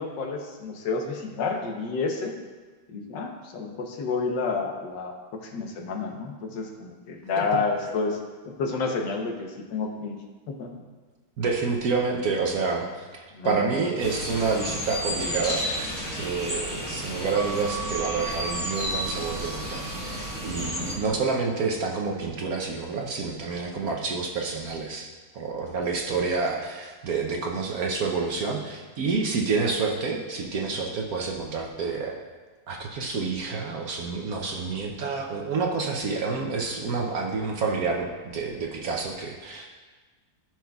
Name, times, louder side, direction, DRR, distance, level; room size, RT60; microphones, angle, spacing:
voice 1, 0.0-2.3 2.9-8.2 8.4-10.2 10.5-10.7 13.3-13.6, left 4 dB, 75° left, 2 dB, 1.5 m, -30 dB
voice 2, 11.4-15.8 16.1-25.1 25.3-32.1 32.7-39.7, right 4 dB, 60° right, 1 dB, 1.0 m, -28 dB
sound 1, 14.0-21.0, equal, 10° left, 1.0 m, -31 dB
14.0 x 5.8 x 2.3 m, 1.3 s
omnidirectional pair, 2.0 m